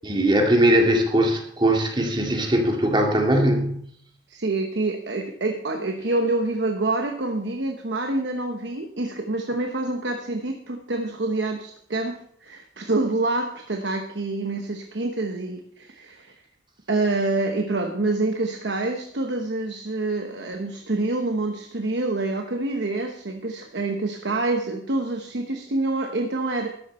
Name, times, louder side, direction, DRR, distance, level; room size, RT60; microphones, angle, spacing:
voice 1, 0.0-3.9, right 1 dB, 25° right, 2 dB, 2.1 m, -20 dB
voice 2, 4.3-16.3 16.9-26.7, right 2 dB, 70° right, 5 dB, 1.0 m, -27 dB
13.0 x 10.5 x 4.3 m, 0.66 s
head